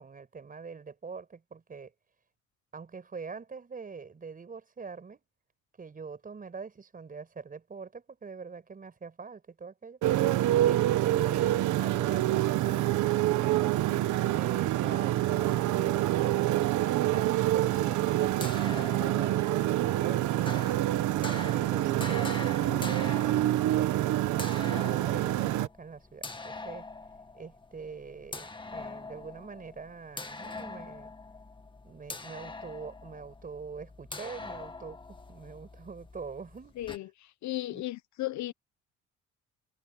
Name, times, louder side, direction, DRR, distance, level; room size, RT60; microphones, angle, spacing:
voice 1, 0.0-1.9 2.7-5.2 5.8-10.0 10.7-20.6 21.5-26.9 27.3-31.1 31.8-36.8 37.7-37.8, right 5 dB, 30° right, 5.4 m, -44 dB
Motorcycle, 10.0-25.7, right 14 dB, 85° right, 1.4 m, -27 dB
sound 1, 18.4-37.0, left 3 dB, 15° left, 1.9 m, -44 dB
voice 2, 22.1-23.0 36.8-37.1 37.4-38.5, left 16 dB, 75° left, 1.0 m, -36 dB
cardioid pair, 125°, 29 cm